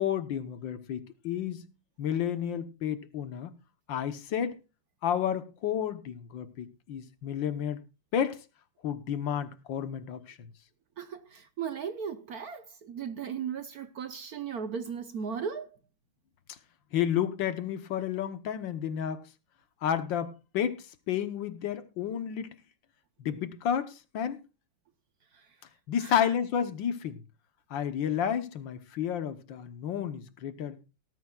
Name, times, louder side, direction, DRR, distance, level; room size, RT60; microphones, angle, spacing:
voice 1, 0.0-1.7 2.0-3.5 3.9-4.6 5.0-7.8 8.1-8.4 8.8-10.5 16.9-19.2 19.8-22.5 23.2-24.4 25.9-27.2 27.7-30.8, left 9 dB, 70° left, 1.6 m, -31 dB
voice 2, 11.0-15.7 25.3-25.5 26.0-26.1, right 7 dB, 60° right, 1.1 m, -36 dB
18.5 x 13.5 x 2.3 m
omnidirectional pair, 2.2 m